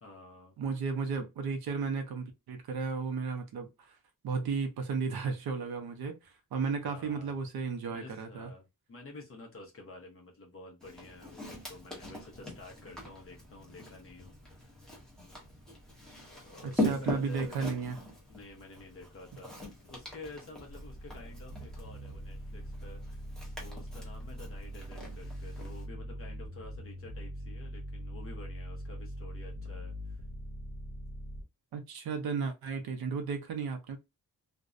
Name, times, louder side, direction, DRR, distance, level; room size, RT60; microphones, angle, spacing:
voice 1, 0.0-0.5 6.8-7.4 7.9-14.8 16.4-17.7 18.3-19.6 19.9-30.2, left 2 dB, 40° left, 0.7 m, -50 dB
voice 2, 0.6-4.0 4.2-8.5 16.8-18.0 31.7-34.0, right 5 dB, 85° right, 0.6 m, -34 dB
Walk footsteps, 10.8-25.8, left 1 dB, ahead, 0.7 m, -41 dB
sound 1, 20.7-31.4, equal, 50° right, 0.9 m, -42 dB
2.5 x 2.0 x 2.4 m
wide cardioid pair, 170°, 36 cm